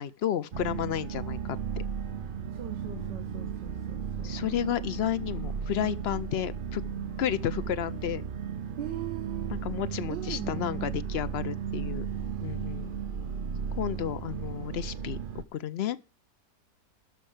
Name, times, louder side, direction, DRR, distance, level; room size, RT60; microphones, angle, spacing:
voice 1, 0.0-1.8 4.2-6.8 7.2-8.3 9.5-12.1 12.4-12.9 13.8-15.2 15.5-16.0, left 10 dB, 70° left, 0.6 m, -32 dB
sound 1, 0.5-15.4, right 7 dB, 50° right, 0.6 m, -35 dB
voice 2, 2.5-4.4 8.8-9.6 10.1-10.9, right 8 dB, 80° right, 1.9 m, -40 dB
13.0 x 4.6 x 7.7 m
omnidirectional pair, 1.9 m